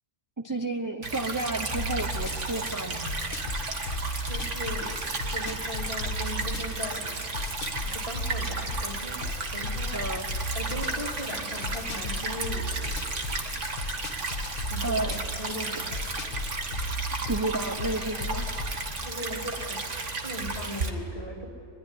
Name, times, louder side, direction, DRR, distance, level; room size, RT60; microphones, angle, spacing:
voice 1, 0.4-3.1 9.9-10.3 14.8-15.2 15.7-15.8 17.3-18.5, right 2 dB, 20° right, 6 dB, 0.7 m, -31 dB
Stream / Trickle dribble, 1.0-20.9, right 3 dB, 65° right, 2.2 m, -33 dB
sound 1, 1.7-18.9, left 2 dB, 90° left, 2.0 m, -35 dB
voice 2, 4.3-5.0 5.3-7.2 7.9-10.1 10.5-13.0 14.7-16.1 19.0-19.8 20.2-21.5, left 1 dB, 30° left, 1 dB, 2.6 m, -38 dB
24.0 x 21.5 x 9.8 m, 2.8 s
omnidirectional pair, 1.3 m